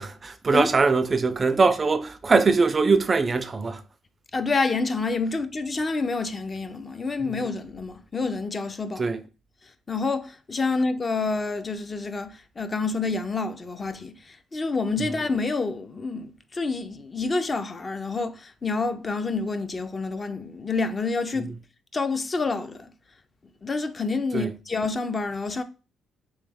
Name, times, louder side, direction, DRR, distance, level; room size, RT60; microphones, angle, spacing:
voice 1, 0.0-3.8 7.2-7.4 9.0-9.2 24.3-24.5, right 4 dB, 35° right, 0.4 m, -22 dB
voice 2, 4.3-9.1 9.9-21.5 21.9-22.9 23.6-25.6, left 3 dB, 30° left, 0.5 m, -28 dB
3.4 x 3.1 x 3.4 m
cardioid pair, 90°, 0 cm